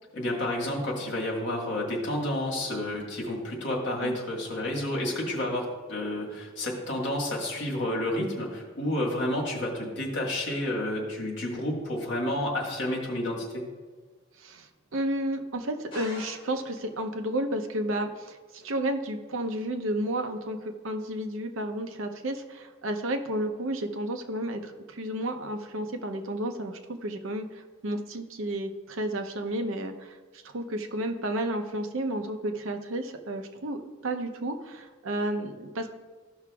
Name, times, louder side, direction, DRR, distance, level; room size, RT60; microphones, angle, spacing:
voice 1, 0.1-13.6, left 1 dB, 55° left, -1 dB, 1.7 m, -30 dB
voice 2, 14.4-35.9, right 1 dB, 75° right, 6 dB, 0.7 m, -32 dB
sound 1, 15.9-17.0, left 2 dB, 25° left, 2.5 m, -45 dB
14.0 x 5.9 x 2.4 m, 1.4 s
head